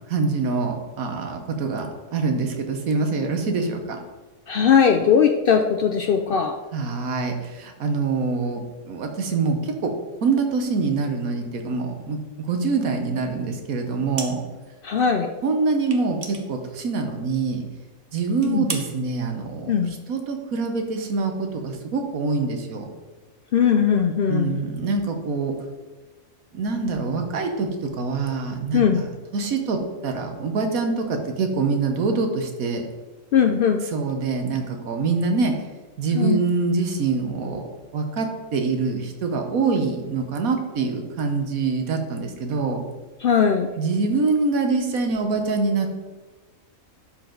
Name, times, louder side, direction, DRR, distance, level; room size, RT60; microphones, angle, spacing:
voice 1, 0.1-4.0 6.7-9.9 10.2-12.2 12.5-14.4 15.4-17.6 18.1-19.7 20.1-22.8 24.3-25.5 26.5-27.7 28.0-29.1 29.3-32.8 33.9-35.5 36.0-37.7 37.9-38.3 38.5-42.8 43.8-45.9, right 4 dB, 80° right, 4 dB, 1.5 m, -25 dB
voice 2, 4.5-6.6 14.8-15.3 18.4-18.7 19.7-19.9 23.5-24.6 28.7-29.0 33.3-33.9 36.1-36.5 43.2-43.7, left 7 dB, 75° left, 5 dB, 0.5 m, -19 dB
sound 1, 14.1-14.7 15.0-15.1 15.8-17.3 17.6-17.8 18.2-18.9, right 5 dB, 45° right, 1.0 m, -35 dB
12.0 x 4.4 x 3.9 m, 1.2 s
omnidirectional pair, 1.5 m